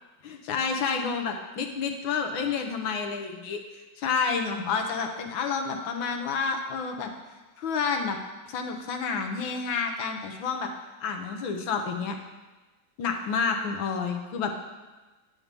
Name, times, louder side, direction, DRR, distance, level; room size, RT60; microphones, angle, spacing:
voice 1, 0.2-7.1 7.6-8.2 8.5-10.7 11.0-12.2 13.0-14.6, left 5 dB, 80° left, 4 dB, 1.7 m, -29 dB
9.0 x 4.8 x 6.7 m, 1.2 s
omnidirectional pair, 2.1 m